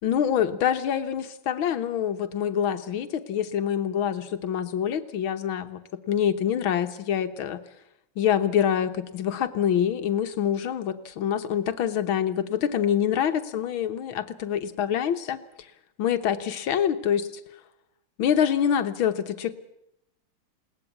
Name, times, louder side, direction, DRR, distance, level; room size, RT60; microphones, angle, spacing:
voice 1, 0.0-5.8 6.1-7.6 8.2-15.4 16.0-17.3 18.2-19.5, left 9 dB, 70° left, 9 dB, 1.9 m, -25 dB
21.0 x 18.5 x 8.4 m, 0.82 s
omnidirectional pair, 2.4 m